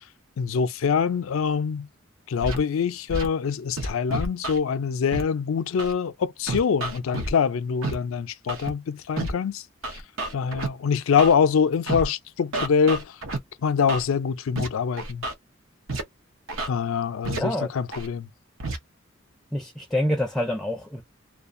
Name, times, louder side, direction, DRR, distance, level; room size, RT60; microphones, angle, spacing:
voice 1, 0.4-1.9 2.3-9.6 10.3-13.0 13.6-15.3 16.7-18.3, left 6 dB, 85° left, 0.4 m, -24 dB
Scratching (performance technique), 2.4-2.6 3.1-3.3 3.8-4.6 5.1-5.2 5.8-5.9 6.5-7.3 7.8-7.9 8.5-8.7 9.2-9.3 9.8-10.7 11.2-11.3 11.9-12.1 12.5-13.4 13.9-14.0 14.6-14.7 15.0-15.3 15.9-16.0 16.5-16.7 17.2-17.4 17.9-18.1 18.6-18.8, right 2 dB, 75° right, 0.7 m, -29 dB
voice 2, 17.3-17.7 19.5-21.0, left 1 dB, 5° left, 0.4 m, -27 dB
2.4 x 2.2 x 2.5 m
head